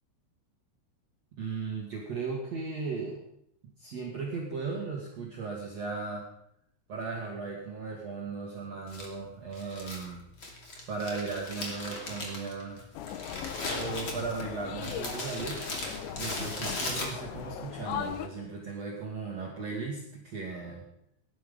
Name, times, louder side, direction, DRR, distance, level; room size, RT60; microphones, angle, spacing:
voice 1, 1.3-3.2 3.8-6.2 6.9-10.2 10.9-12.8 13.7-15.6 16.1-20.8, right 4 dB, 45° right, -3 dB, 2.5 m, -36 dB
Crumpling crinkling, 8.9-17.5, left 2 dB, 35° left, 2.7 m, -38 dB
sound 1, 12.9-18.3, left 9 dB, 80° left, 3.1 m, -39 dB
17.0 x 11.0 x 5.5 m, 0.76 s
omnidirectional pair, 5.2 m